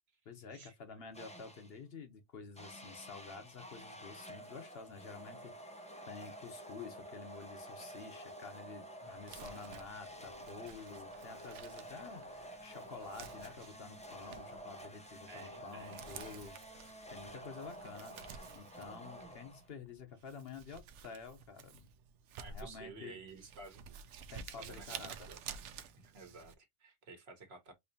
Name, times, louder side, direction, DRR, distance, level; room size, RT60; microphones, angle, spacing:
voice 1, 0.3-21.9 22.5-23.2 24.3-25.3, left 5 dB, 60° left, 0.9 m, -50 dB
sound 1, 1.1-1.8 2.6-19.9, right 1 dB, 10° left, 0.4 m, -50 dB
Crumpling crinkling, 9.2-26.5, right 7 dB, 80° right, 0.9 m, -52 dB
voice 2, 15.3-16.1 22.3-24.2 24.6-25.0 25.3-25.4 25.8-27.7, right 3 dB, 60° right, 1.3 m, -53 dB
4.3 x 2.9 x 2.6 m
omnidirectional pair, 1.2 m